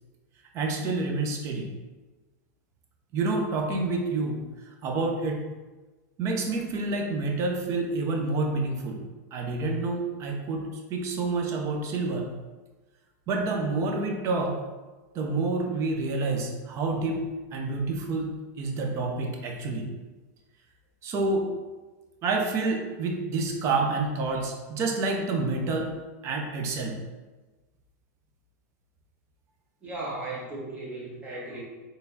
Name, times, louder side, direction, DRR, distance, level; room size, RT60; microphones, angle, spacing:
voice 1, 0.5-1.7 3.1-4.4 4.8-5.4 6.2-9.0 9.3-12.3 13.3-14.6 15.1-17.2 17.5-18.3 18.6-19.9 21.0-21.5 22.2-25.9 26.2-27.0, right 3 dB, 35° right, 2 dB, 0.7 m, -28 dB
voice 2, 29.8-31.6, right 2 dB, 15° right, -5 dB, 1.2 m, -36 dB
4.3 x 3.3 x 2.7 m, 1.2 s
supercardioid pair, 145°, 9 cm